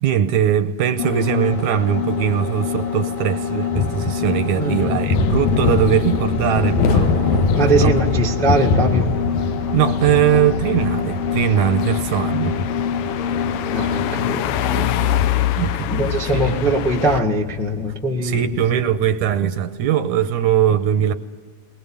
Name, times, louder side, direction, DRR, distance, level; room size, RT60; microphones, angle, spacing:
voice 1, 0.0-8.0 9.7-12.6 15.6-16.7 18.2-21.1, right 10 dB, 75° right, 2.0 m, -20 dB
sound 1, 1.0-14.5, left 7 dB, 55° left, 2.4 m, -26 dB
sound 2, 3.7-19.5, left 4 dB, 70° left, 2.4 m, -25 dB
voice 2, 4.6-5.0 7.6-9.1 13.7-14.9 15.9-18.4, right 2 dB, 5° left, 0.4 m, -21 dB
sound 3, 4.7-17.2, left 12 dB, 85° left, 2.4 m, -28 dB
21.5 x 20.0 x 7.1 m
omnidirectional pair, 3.7 m